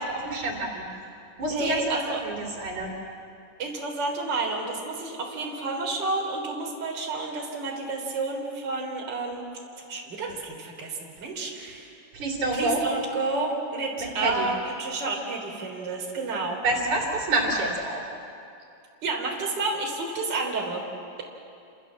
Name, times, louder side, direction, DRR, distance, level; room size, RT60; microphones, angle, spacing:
voice 1, 0.1-0.9 1.4-2.0 2.2-2.9 12.1-12.8 14.2-14.5 16.6-18.0, right 2 dB, 60° right, -1 dB, 4.6 m, -27 dB
voice 2, 1.5-2.2 3.6-9.5 9.9-12.0 12.5-16.6 19.0-20.8, right 3 dB, 30° right, -1 dB, 4.1 m, -30 dB
29.5 x 27.0 x 7.5 m, 2.6 s
omnidirectional pair, 3.9 m